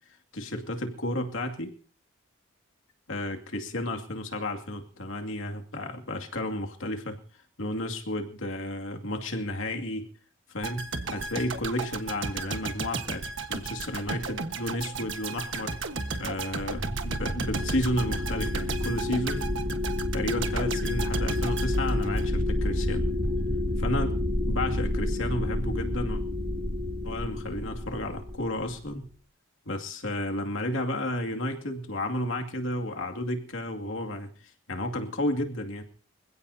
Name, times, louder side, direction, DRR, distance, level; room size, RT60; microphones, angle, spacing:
voice 1, 0.3-1.7 3.1-7.2 7.6-10.1 10.5-10.9 11.1-13.2 13.5-15.8 16.2-19.5 20.1-23.1 23.8-24.1 24.5-26.2 27.0-29.1 29.7-34.3 34.7-35.8, left 1 dB, 75° left, 4 dB, 2.5 m, -32 dB
sound 1, 10.6-22.6 23.0-23.1, right 4 dB, 65° right, 1.4 m, -35 dB
sound 2, 16.6-28.8, left 1 dB, 40° right, 2.7 m, -29 dB
26.5 x 16.5 x 2.8 m, 0.43 s
head